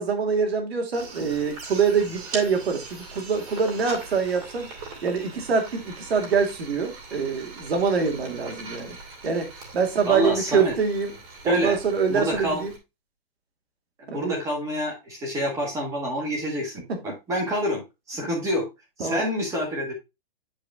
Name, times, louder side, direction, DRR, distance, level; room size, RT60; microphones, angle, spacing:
voice 1, 0.0-4.7 5.0-8.9 9.2-9.5 9.7-11.1 11.4-12.7 14.1-14.4 19.0-19.2, right 5 dB, 90° right, 2.4 m, -25 dB
sound 1, 0.9-12.8, right 3 dB, 35° right, 2.7 m, -41 dB
voice 2, 10.1-10.7 11.4-11.8 12.1-12.6 14.0-18.7 19.0-19.9, equal, 10° right, 1.8 m, -27 dB
9.3 x 4.9 x 2.3 m
hypercardioid pair, 170°, 30 cm